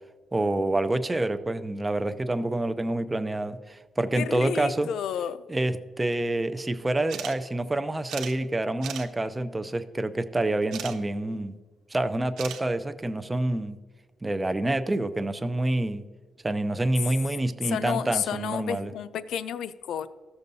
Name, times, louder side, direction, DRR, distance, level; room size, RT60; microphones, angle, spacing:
voice 1, 0.3-4.9 5.5-11.6 11.9-13.8 14.2-16.0 16.4-18.9, right 2 dB, 15° right, 11 dB, 0.5 m, -27 dB
voice 2, 4.1-5.4 17.7-20.1, left 9 dB, 85° left, 15 dB, 0.3 m, -31 dB
sound 1, 7.1-7.3 7.6-7.7 8.1-8.3 8.8-9.1 10.7-11.0 12.4-12.6, right 9 dB, 90° right, 0.7 m, -36 dB
14.0 x 6.8 x 2.7 m, 1.4 s
cardioid pair, 105°, 0 cm